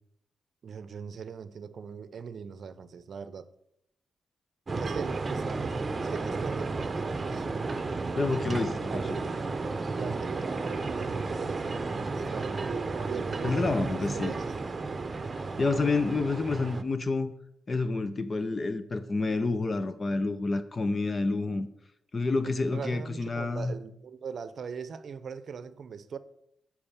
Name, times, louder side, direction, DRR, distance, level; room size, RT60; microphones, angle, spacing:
voice 1, 0.6-3.5 4.8-5.8 6.0-7.5 7.8-7.9 8.4-9.4 9.9-14.8 22.4-26.2, right 6 dB, 60° right, 0.6 m, -40 dB
sound 1, 4.7-16.8, right 3 dB, 30° right, 0.9 m, -33 dB
voice 2, 8.2-9.1 13.4-14.3 15.4-17.3 17.7-21.7 22.1-23.7, left 3 dB, 35° left, 0.6 m, -29 dB
8.6 x 4.9 x 7.3 m
cardioid pair, 95°, 0 cm